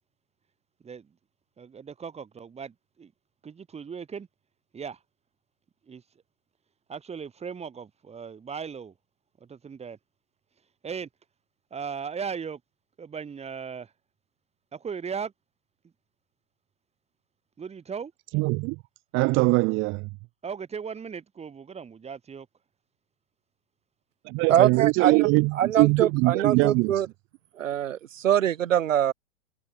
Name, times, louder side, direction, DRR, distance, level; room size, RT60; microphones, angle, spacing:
voice 1, 1.6-3.1 3.4-4.3 4.7-5.0 5.9-6.0 6.9-8.9 9.4-10.0 10.8-11.1 11.7-12.6 13.0-13.9 14.7-15.3 17.6-18.1 20.4-22.5, right 6 dB, 15° right, 3.9 m, -37 dB
voice 2, 18.3-18.8 19.1-20.1 24.2-26.9, right 25 dB, 30° right, 0.8 m, -22 dB
voice 3, 24.5-25.3 25.5-27.1 27.6-29.1, right 10 dB, 75° right, 4.2 m, -23 dB
hypercardioid pair, 120°, 39 cm